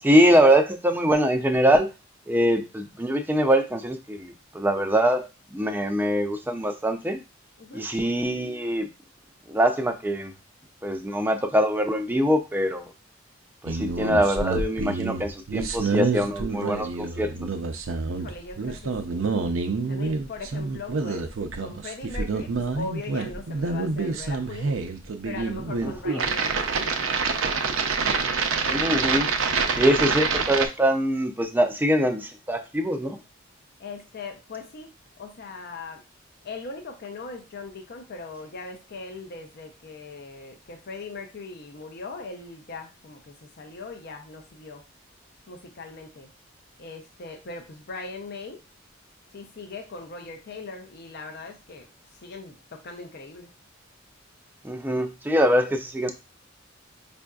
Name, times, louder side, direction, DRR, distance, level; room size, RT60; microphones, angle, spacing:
voice 1, 0.0-1.9 2.3-7.2 7.7-8.9 9.5-10.3 10.8-12.9 13.6-17.3 25.8-26.2 28.7-29.3 29.8-33.2 54.6-56.1, equal, 10° right, 6 dB, 0.4 m, -23 dB
voice 2, 7.6-7.9 18.2-19.3 19.9-21.3 21.6-24.8 25.2-27.0 33.8-36.0 36.4-44.8 45.5-46.3 46.8-48.6 49.3-53.5, left 3 dB, 50° left, 4 dB, 0.6 m, -40 dB
sound 1, 13.7-30.7, right 4 dB, 70° right, 0.5 m, -27 dB
5.3 x 2.5 x 2.3 m, 0.27 s
head